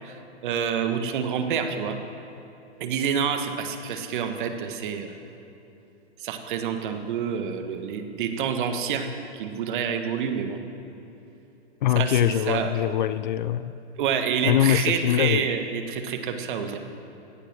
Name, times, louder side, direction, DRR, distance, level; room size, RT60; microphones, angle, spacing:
voice 1, 0.0-2.0 2.8-5.1 6.2-10.6 11.9-13.0 14.0-16.8, right 7 dB, 50° right, 7 dB, 1.5 m, -28 dB
voice 2, 11.8-13.7 14.4-15.5, left 12 dB, 45° left, 16 dB, 0.4 m, -23 dB
17.0 x 9.9 x 6.1 m, 3.0 s
hypercardioid pair, 135°, 33 cm